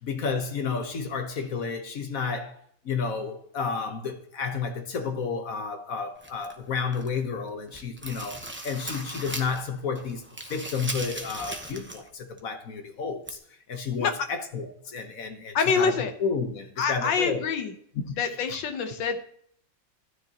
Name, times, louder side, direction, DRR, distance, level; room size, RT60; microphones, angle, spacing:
voice 1, 0.0-2.6 2.8-10.2 10.5-13.4 13.7-17.5 18.1-18.2 18.5-18.6, left 5 dB, 50° left, 1.4 m, -31 dB
sound 1, 6.2-7.2 7.6-9.7 10.0-12.1 12.4-12.5 13.3-13.4, right 1 dB, 10° right, 0.6 m, -38 dB
voice 2, 15.5-16.1 16.8-17.7 18.2-19.2, left 5 dB, 80° left, 1.7 m, -26 dB
12.5 x 10.0 x 2.9 m
omnidirectional pair, 2.0 m